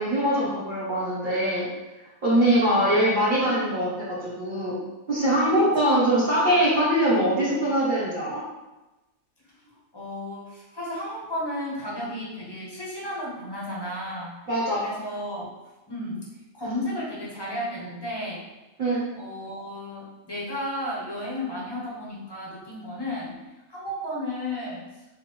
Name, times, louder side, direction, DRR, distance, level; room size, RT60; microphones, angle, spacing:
voice 1, 0.0-1.7 2.2-4.7 5.1-8.4 14.5-14.9 18.8-19.0, right 1 dB, 40° right, -9 dB, 1.1 m, -22 dB
voice 2, 2.4-2.9 5.6-5.7 9.6-14.4 14.8-15.5 15.9-18.5 19.2-23.4 23.7-24.8, left 1 dB, 20° left, -5 dB, 0.8 m, -33 dB
4.1 x 2.6 x 3.0 m, 1.1 s
omnidirectional pair, 1.4 m